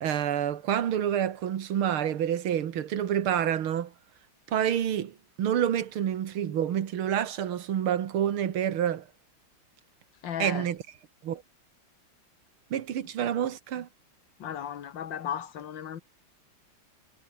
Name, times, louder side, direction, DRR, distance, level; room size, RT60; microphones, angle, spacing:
voice 1, 0.0-3.9 4.5-9.1 10.4-10.8 11.2-11.4 12.7-13.9, right 10 dB, 85° right, 2.3 m, -28 dB
voice 2, 10.2-10.7 14.4-16.0, left 9 dB, 65° left, 2.1 m, -35 dB
omnidirectional pair, 2.3 m